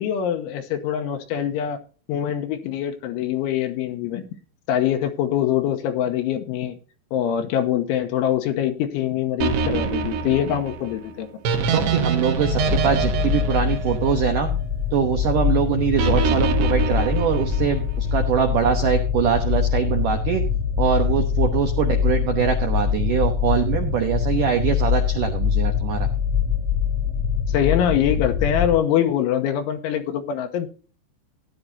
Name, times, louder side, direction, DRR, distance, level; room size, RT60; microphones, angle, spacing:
voice 1, 0.0-1.8 2.1-4.3 4.7-6.8 7.1-11.3 27.5-30.7, left 10 dB, 85° left, 4 dB, 3.3 m, -23 dB
sound 1, 9.4-14.7 16.0-17.9, right 5 dB, 70° right, 3.1 m, -25 dB
voice 2, 11.7-14.5 14.9-20.4 20.8-26.1, right 7 dB, 85° right, 4 dB, 1.8 m, -23 dB
sound 2, 12.4-28.7, left 7 dB, 50° right, 0.9 m, -23 dB
16.0 x 10.0 x 2.7 m, 0.38 s
omnidirectional pair, 5.5 m